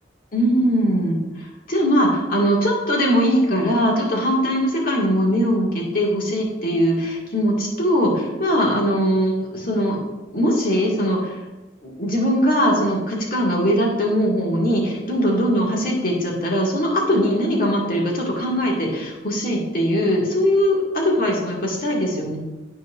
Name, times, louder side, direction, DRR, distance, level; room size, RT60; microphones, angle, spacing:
voice 1, 0.3-10.0 10.3-11.4 11.8-22.4, equal, 50° left, -3 dB, 1.9 m, -21 dB
12.5 x 4.6 x 2.5 m, 1.1 s
head